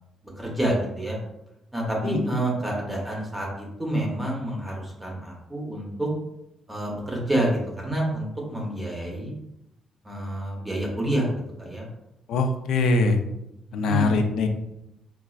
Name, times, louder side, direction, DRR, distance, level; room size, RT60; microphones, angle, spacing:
voice 1, 0.4-1.2 1.7-6.1 6.7-9.3 10.0-11.3 11.6-11.9 13.9-14.2, right 1 dB, 10° right, -2 dB, 0.6 m, -28 dB
voice 2, 12.3-13.2 13.7-14.5, left 3 dB, 85° left, 5 dB, 0.4 m, -22 dB
4.1 x 2.3 x 2.3 m, 0.85 s
cardioid pair, 140°, 0 cm